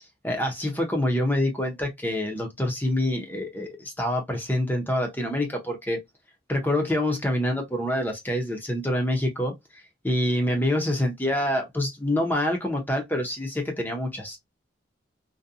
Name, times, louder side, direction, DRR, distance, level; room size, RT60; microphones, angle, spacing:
voice 1, 0.2-6.0 6.5-14.4, left 1 dB, 10° left, 0.6 m, -26 dB
2.6 x 2.2 x 2.4 m
head